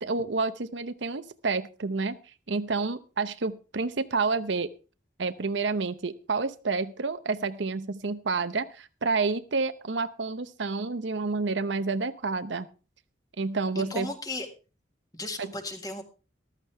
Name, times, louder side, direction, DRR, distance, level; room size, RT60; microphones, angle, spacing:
voice 1, 0.0-2.2 2.5-4.7 5.2-12.7 13.4-14.1 15.4-15.5, right 4 dB, 70° right, 12 dB, 0.8 m, -29 dB
voice 2, 13.7-14.5 15.1-16.0, left 2 dB, 20° left, 6 dB, 1.8 m, -35 dB
14.0 x 13.0 x 3.4 m, 0.33 s
head